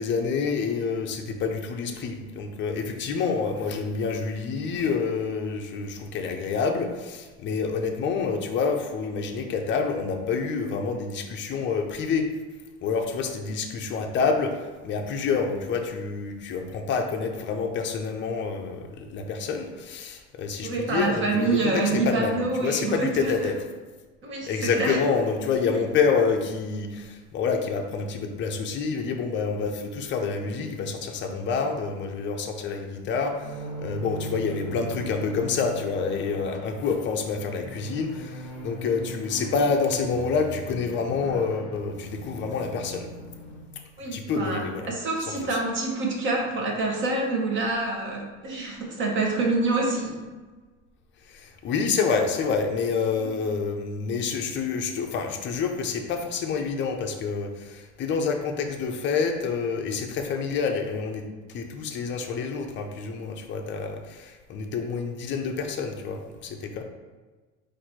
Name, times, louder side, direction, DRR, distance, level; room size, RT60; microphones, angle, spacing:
voice 1, 0.0-12.3 12.8-23.5 24.4-43.1 44.1-44.9 45.2-45.6 51.3-61.2 61.5-66.8, left 5 dB, 30° left, 3 dB, 0.5 m, -28 dB
voice 2, 20.6-23.3 24.2-25.0 25.7-25.8 44.0-44.6 44.9-50.2, right 3 dB, 30° right, 0 dB, 1.0 m, -26 dB
sound 1, 33.4-43.6, equal, ahead, 1.3 m, -39 dB
4.1 x 2.7 x 4.5 m, 1.3 s
cardioid pair, 135°, 37 cm